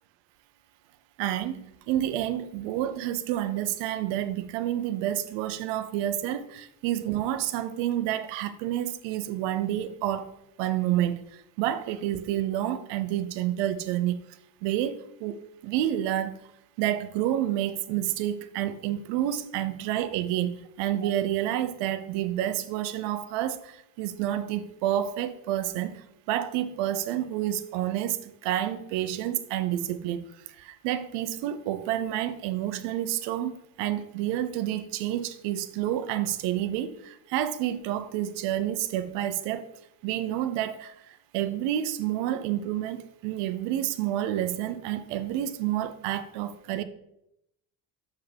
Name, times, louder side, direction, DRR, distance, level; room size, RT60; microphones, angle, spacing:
voice 1, 1.2-10.3 10.6-11.2 11.6-14.3 14.6-15.4 15.6-16.3 16.8-30.2 30.6-39.7 40.0-46.8, right 12 dB, 85° right, 0.7 m, -29 dB
6.7 x 5.8 x 3.4 m
supercardioid pair, 80°, 42 cm